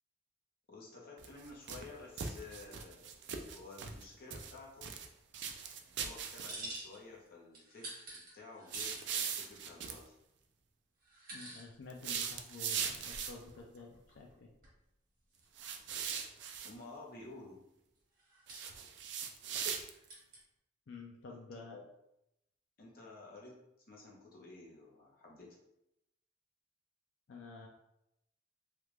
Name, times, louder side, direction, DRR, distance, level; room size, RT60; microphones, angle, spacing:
voice 1, 0.7-3.1 3.5-4.9 5.9-10.1 16.6-17.6 21.3-21.4 21.7-21.8 22.8-23.6 23.9-25.6, left 3 dB, 50° left, -2 dB, 0.8 m, -52 dB
sound 1, 1.2-1.9 2.2-4.0 4.3-5.1 5.3-6.8 8.7-10.0 11.9-13.5 15.6-16.7 18.5-20.1, right 7 dB, 65° right, 0.4 m, -40 dB
sound 2, 6.1-7.3 7.5-9.2 10.0-10.1 11.0-11.6 12.0-12.1 12.8-14.3 14.6-14.7 15.4-15.5 15.8-16.4 18.2-18.9 19.7-20.4, right 2 dB, 45° right, 1.3 m, -49 dB
voice 2, 11.3-14.5 20.9-21.8 27.3-27.7, left 3 dB, 75° left, 0 dB, 0.4 m, -50 dB
3.3 x 2.4 x 3.1 m, 0.83 s
head